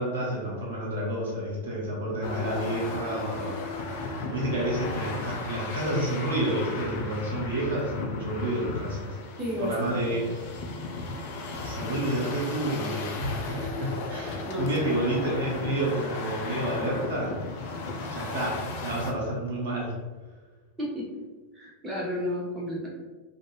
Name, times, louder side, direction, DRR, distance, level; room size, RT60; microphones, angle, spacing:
voice 1, 0.0-9.1 9.6-10.2 11.6-17.3 18.1-19.9, right 1 dB, 60° right, -4 dB, 1.0 m, -30 dB
sound 1, 2.2-19.1, left 3 dB, 50° left, 0.4 m, -36 dB
voice 2, 9.4-10.2 14.4-14.7 20.8-21.1 21.5-22.9, left 1 dB, 15° right, -4 dB, 0.9 m, -32 dB
2.5 x 2.4 x 3.1 m, 1.3 s
figure-of-eight pair, 90°, 0 cm